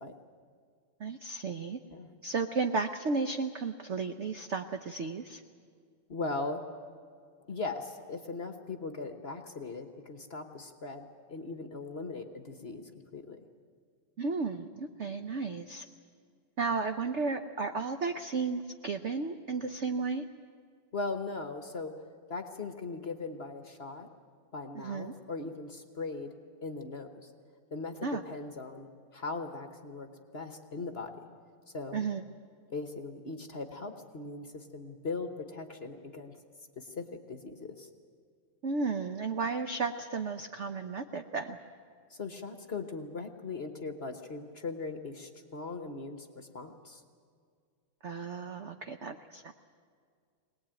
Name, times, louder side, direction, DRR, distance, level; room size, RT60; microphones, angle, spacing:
voice 1, 1.0-1.8 2.2-5.4 14.2-15.9 16.6-20.2 24.7-25.1 28.0-28.2 31.9-32.2 38.6-41.6 48.0-49.5, right 4 dB, 70° right, 7 dB, 0.6 m, -33 dB
voice 2, 6.1-6.6 7.5-13.4 20.9-22.0 22.3-24.1 24.5-26.3 26.6-27.3 27.7-31.2 31.7-32.1 32.7-36.4 36.8-37.9 42.1-47.0, left 3 dB, 40° left, 6 dB, 1.0 m, -39 dB
23.0 x 19.0 x 9.0 m, 2.1 s
omnidirectional pair, 2.2 m